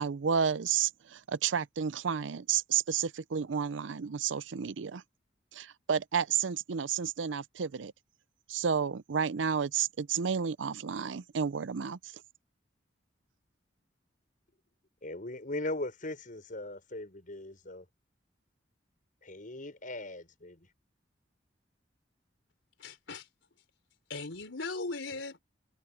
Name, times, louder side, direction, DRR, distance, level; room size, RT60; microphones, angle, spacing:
voice 1, 0.0-5.0 5.5-7.9 8.5-12.0, right 7 dB, 85° right, 0.5 m, -31 dB
voice 2, 15.0-17.9 19.2-20.7, left 2 dB, 45° left, 6.2 m, -39 dB
voice 3, 22.8-23.3 24.1-25.4, left 3 dB, 90° left, 3.7 m, -38 dB
head